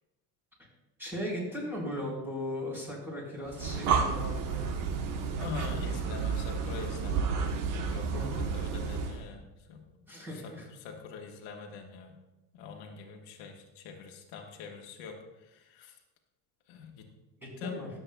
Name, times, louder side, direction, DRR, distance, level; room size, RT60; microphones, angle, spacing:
voice 1, 1.0-4.7 8.1-8.4 10.1-10.7 17.4-17.9, equal, 5° right, -5 dB, 4.1 m, -37 dB
Breathing, 3.5-9.2, right 5 dB, 55° right, 1.1 m, -31 dB
voice 2, 5.4-7.3 7.8-9.8 10.4-10.5 10.8-12.2 12.5-15.9 16.7-17.1 17.6-17.8, left 6 dB, 75° left, 2 dB, 1.4 m, -43 dB
22.5 x 7.8 x 2.2 m, 1.0 s
cardioid pair, 155°, 40 cm